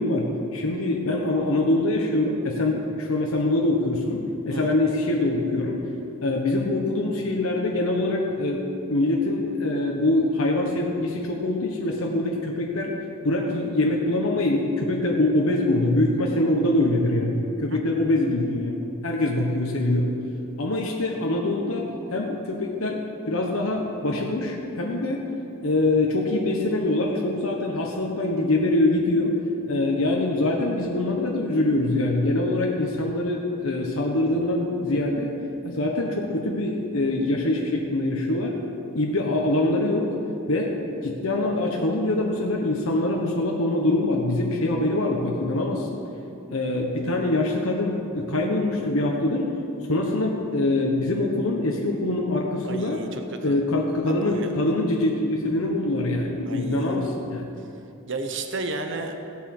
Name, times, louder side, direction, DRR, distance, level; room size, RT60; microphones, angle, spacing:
voice 1, 0.0-5.8 6.2-12.9 13.2-20.1 20.6-25.3 25.6-29.4 29.7-35.3 35.6-38.5 38.9-40.1 40.5-40.8 41.0-46.0 46.5-49.5 49.9-53.0 53.4-57.5, left 2 dB, 75° left, -1 dB, 1.3 m, -24 dB
voice 2, 52.6-53.5 54.0-54.5 56.4-57.1 58.1-59.1, right 2 dB, 55° right, 5 dB, 1.1 m, -33 dB
16.5 x 8.5 x 6.1 m, 2.8 s
head